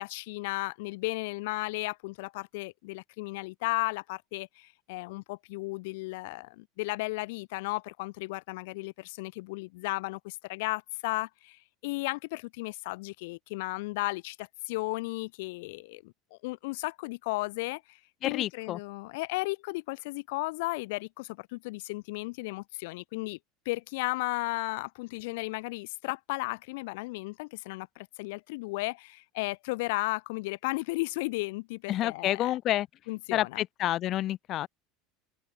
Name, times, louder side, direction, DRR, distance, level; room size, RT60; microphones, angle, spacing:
voice 1, 0.0-18.0 18.2-23.4 23.6-32.6 33.1-33.6, left 24 dB, 70° left, 1.6 m, -34 dB
voice 2, 18.2-18.8 31.9-32.9 33.3-34.7, left 13 dB, 35° left, 1.4 m, -29 dB
cardioid pair, 170°, 0 cm